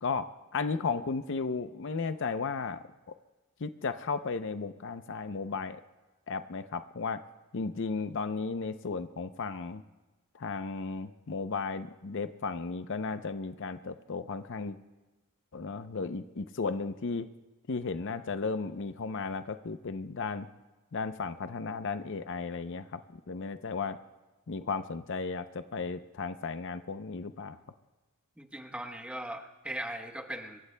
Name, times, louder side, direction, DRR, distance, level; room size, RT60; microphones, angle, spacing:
voice 1, 0.0-2.8 3.6-5.8 6.3-7.2 7.5-9.8 10.4-14.8 15.5-17.3 17.7-20.5 20.9-24.0 24.5-27.6, left 4 dB, 60° left, 10 dB, 0.6 m, -34 dB
voice 2, 28.4-30.6, right 1 dB, 5° right, 4 dB, 1.0 m, -39 dB
26.5 x 23.0 x 2.2 m, 1.1 s
head